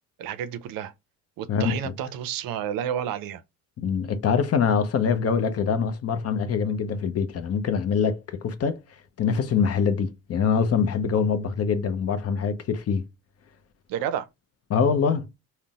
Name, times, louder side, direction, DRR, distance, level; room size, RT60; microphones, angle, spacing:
voice 1, 0.2-0.9 1.4-3.4 13.9-14.3, right 9 dB, 60° right, 0.5 m, -30 dB
voice 2, 3.8-8.8 9.2-13.0 14.7-15.3, left 6 dB, 40° left, 0.5 m, -24 dB
3.7 x 2.1 x 2.3 m
hypercardioid pair, 65°, 39 cm